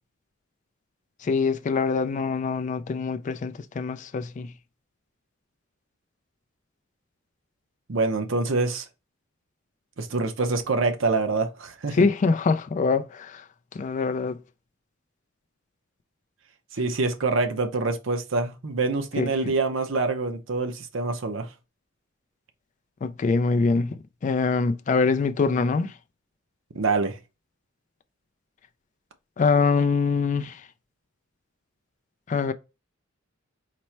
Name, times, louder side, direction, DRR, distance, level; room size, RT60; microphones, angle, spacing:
voice 1, 1.2-4.5 11.9-13.4 13.7-14.4 19.2-19.5 23.0-26.0 29.4-30.7 32.3-32.5, left 4 dB, 40° left, 0.3 m, -24 dB
voice 2, 7.9-8.8 10.0-12.0 16.7-21.5 26.7-27.2, right 3 dB, 70° right, 0.7 m, -25 dB
4.1 x 2.1 x 4.4 m
head